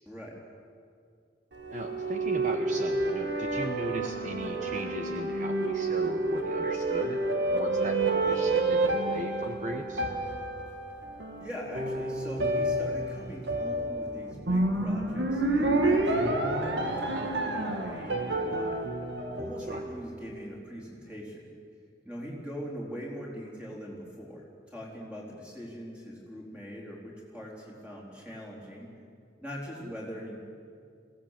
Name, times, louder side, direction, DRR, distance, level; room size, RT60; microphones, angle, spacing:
voice 1, 0.1-0.4 11.4-18.8 19.4-21.5 22.0-28.9 29.4-30.4, equal, 5° right, -4 dB, 4.0 m, -42 dB
sound 1, 1.5-20.1, right 2 dB, 80° right, 1.9 m, -29 dB
voice 2, 1.7-10.0 19.7-19.8 29.8-29.9, right 1 dB, 45° right, 4 dB, 1.0 m, -38 dB
22.0 x 17.0 x 7.5 m, 2.3 s
head